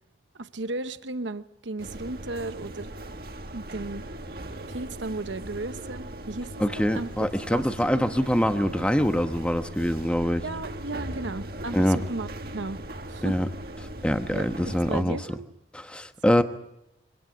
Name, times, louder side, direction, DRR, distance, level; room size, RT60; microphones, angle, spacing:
voice 1, 0.3-2.9 3.5-4.1 4.7-7.1 7.5-7.6 7.9-8.0 10.4-12.3 12.5-12.8 13.1-13.4 14.3-15.5 16.2-16.4, right 2 dB, 80° right, 12 dB, 1.0 m, -35 dB
sound 1, 1.8-15.0, right 1 dB, 55° right, 1.6 m, -39 dB
voice 2, 6.6-10.4 11.7-12.0 13.2-13.5 14.0-15.2 15.7-16.4, equal, 5° left, 8 dB, 1.1 m, -24 dB
24.5 x 17.5 x 8.7 m, 0.88 s
head